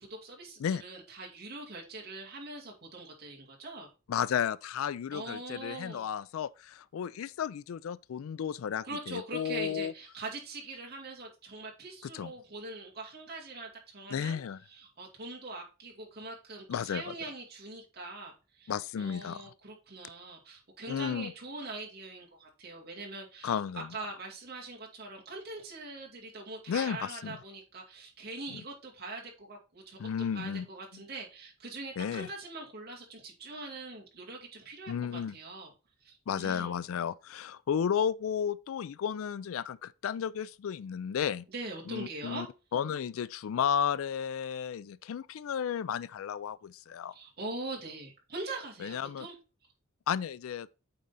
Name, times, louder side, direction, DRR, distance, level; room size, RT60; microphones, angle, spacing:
voice 1, 0.0-3.9 5.1-6.1 8.8-14.4 14.7-23.6 23.9-30.1 30.3-35.7 36.0-36.7 41.5-42.5 47.1-49.4, right 2 dB, 50° right, 2.3 m, -43 dB
voice 2, 4.1-9.9 12.0-12.3 14.1-14.6 16.7-17.1 18.7-19.5 20.9-21.3 23.4-24.0 26.7-27.4 28.5-28.6 30.0-30.7 30.9-31.0 32.0-32.3 34.9-35.4 36.3-41.4 41.9-42.5 42.7-47.1 48.8-49.3 50.1-50.7, left 8 dB, 80° left, 0.3 m, -33 dB
8.6 x 3.8 x 4.0 m
head